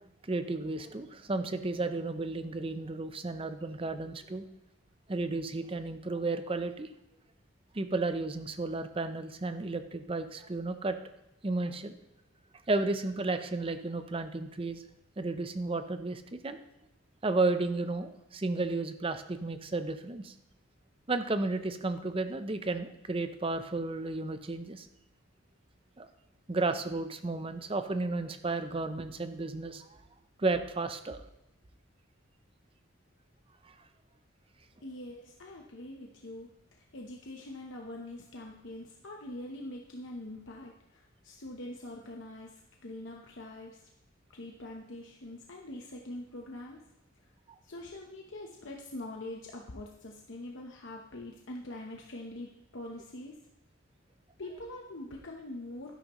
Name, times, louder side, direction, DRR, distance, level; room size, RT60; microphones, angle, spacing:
voice 1, 0.0-4.4 5.1-6.9 7.7-11.0 11.4-12.0 12.7-14.8 15.2-16.6 17.2-20.3 21.1-24.9 26.0-26.1 26.5-29.9 30.4-31.2 33.6-33.7, right 3 dB, 25° right, 9 dB, 0.6 m, -33 dB
voice 2, 34.8-43.8 44.3-46.8 47.6-53.4 54.4-55.9, left 1 dB, 65° left, 0 dB, 0.9 m, -44 dB
12.0 x 10.5 x 3.1 m, 0.89 s
head